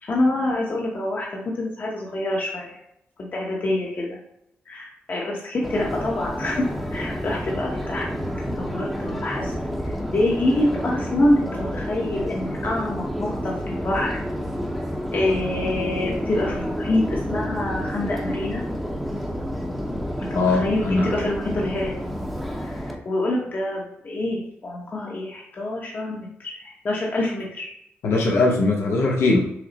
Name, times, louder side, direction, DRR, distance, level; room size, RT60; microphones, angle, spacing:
voice 1, 0.0-2.8 3.2-4.2 4.7-6.7 6.9-8.1 8.4-9.5 9.8-14.2 15.1-18.6 20.2-21.9 22.6-27.7, left 1 dB, 45° left, -2 dB, 0.9 m, -26 dB
Subway metro underground, 5.6-22.9, equal, ahead, 0.7 m, -29 dB
voice 2, 20.3-21.2 28.0-29.4, left 2 dB, 85° left, -1 dB, 0.8 m, -20 dB
6.1 x 2.0 x 4.1 m, 0.76 s
cardioid pair, 95°, 4 cm